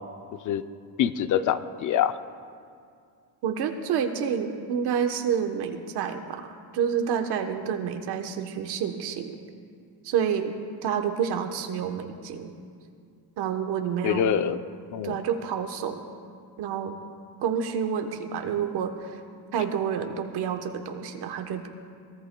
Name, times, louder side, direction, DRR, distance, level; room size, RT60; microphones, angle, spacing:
voice 1, 1.0-2.1 14.0-14.6 14.9-15.2, left 9 dB, 45° left, 11 dB, 0.5 m, -24 dB
voice 2, 3.4-9.4 10.0-10.5 10.8-12.5 13.4-14.3 15.0-16.0 16.6-17.0 17.4-19.2 19.5-21.7, right 7 dB, 65° right, 5 dB, 1.1 m, -29 dB
23.0 x 18.5 x 2.2 m, 2.3 s
cardioid pair, 170°, 42 cm